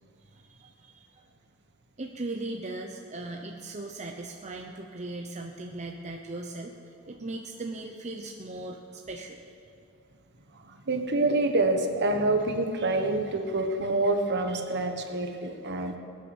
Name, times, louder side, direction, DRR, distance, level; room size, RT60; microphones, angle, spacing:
voice 1, 0.3-1.2 2.0-9.4, right 2 dB, 35° right, 2 dB, 0.8 m, -38 dB
voice 2, 10.5-16.0, right 2 dB, 55° right, 6 dB, 1.3 m, -27 dB
21.0 x 9.6 x 6.2 m, 2.5 s
head